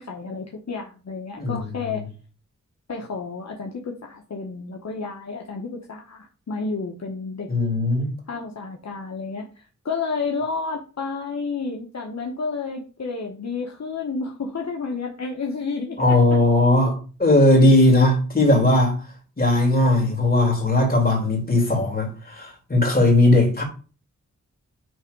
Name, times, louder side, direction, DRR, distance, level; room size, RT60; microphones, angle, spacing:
voice 1, 0.0-2.1 2.9-7.5 8.3-16.4, left 4 dB, 60° left, 1.1 m, -31 dB
voice 2, 1.4-1.8 7.5-8.1 16.0-19.0 19.4-23.6, left 1 dB, 30° left, 3.1 m, -18 dB
9.2 x 3.4 x 5.3 m
wide cardioid pair, 100°, 30 cm